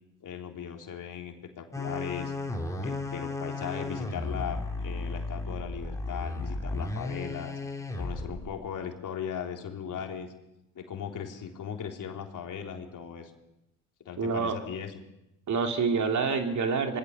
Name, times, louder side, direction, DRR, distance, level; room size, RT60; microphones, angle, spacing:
voice 1, 0.2-2.3 2.8-7.6 7.9-10.3 10.8-13.3 14.0-15.0, left 8 dB, 45° left, 3 dB, 3.6 m, -38 dB
sound 1, 1.7-8.5, left 3 dB, 5° left, 4.0 m, -34 dB
voice 2, 14.2-14.6 15.5-17.0, right 5 dB, 40° right, 5 dB, 3.1 m, -27 dB
26.0 x 19.5 x 6.8 m, 0.89 s
hypercardioid pair, 65°, 42 cm